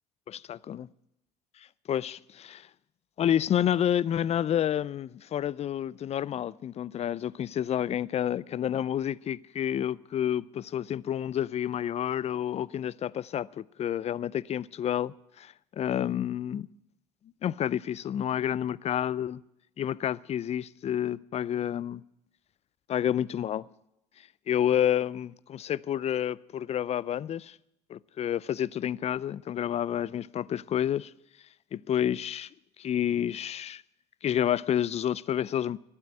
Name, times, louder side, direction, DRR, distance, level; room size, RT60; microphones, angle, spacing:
voice 1, 1.9-2.7 3.2-16.7 17.4-19.4 19.8-22.0 22.9-23.7 24.5-27.6 27.9-31.1 31.7-32.5 32.8-33.8 34.2-35.8, left 10 dB, 35° left, 0.4 m, -29 dB
12.5 x 9.0 x 9.1 m
hypercardioid pair, 65°, 20 cm